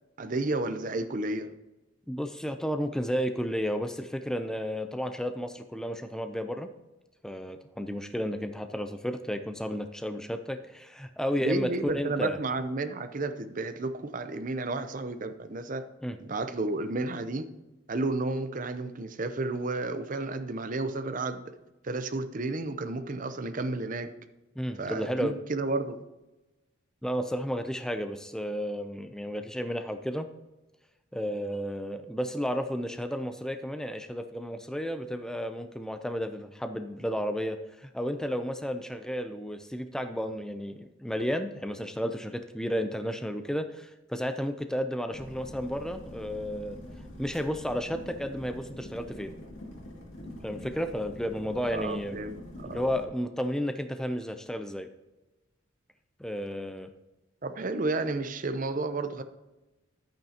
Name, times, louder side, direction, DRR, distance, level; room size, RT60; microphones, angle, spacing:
voice 1, 0.2-1.5 11.4-15.8 16.2-17.5 17.9-21.5 21.8-24.1 24.8-26.0 51.7-52.8 57.4-59.2, right 2 dB, 40° right, 10 dB, 0.6 m, -32 dB
voice 2, 2.1-6.7 7.2-12.4 16.0-16.2 24.6-25.3 27.0-30.3 31.1-46.8 47.2-49.3 50.4-52.2 52.7-54.9 56.2-56.9, equal, 5° left, 7 dB, 0.4 m, -32 dB
sound 1, 45.1-53.1, left 1 dB, 75° left, 2.3 m, -45 dB
10.5 x 8.9 x 2.8 m, 1.1 s
head